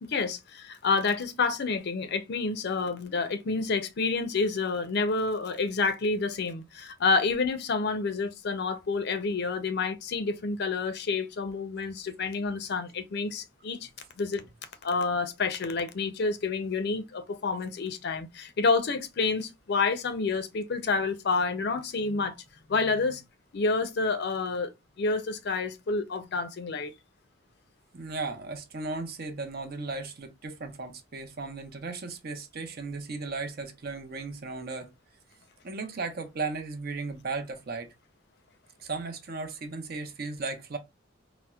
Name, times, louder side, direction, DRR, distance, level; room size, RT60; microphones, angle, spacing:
voice 1, 0.0-13.9 14.2-14.4 14.8-22.3 22.7-23.2 23.5-24.7 25.0-26.9, left 4 dB, 60° left, 0.5 m, -29 dB
voice 2, 27.9-34.9 35.6-37.9 38.8-40.8, right 3 dB, 55° right, 0.6 m, -36 dB
4.1 x 2.0 x 2.3 m
head